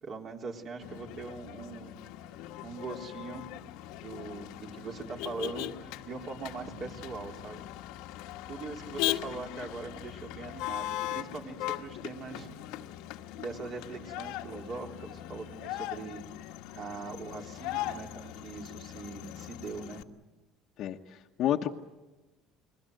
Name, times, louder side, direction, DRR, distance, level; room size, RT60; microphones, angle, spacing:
voice 1, 0.0-2.0 2.6-3.5 4.0-7.6 8.5-12.5 13.4-16.5 16.7-20.1, right 4 dB, 35° right, 2 dB, 3.6 m, -41 dB
Motor vehicle (road), 0.8-20.0, left 14 dB, 80° left, 1.4 m, -39 dB
voice 2, 20.8-21.7, left 11 dB, 50° left, 0 dB, 1.2 m, -30 dB
29.5 x 21.5 x 7.9 m, 1.1 s
cardioid pair, 140°, 0 cm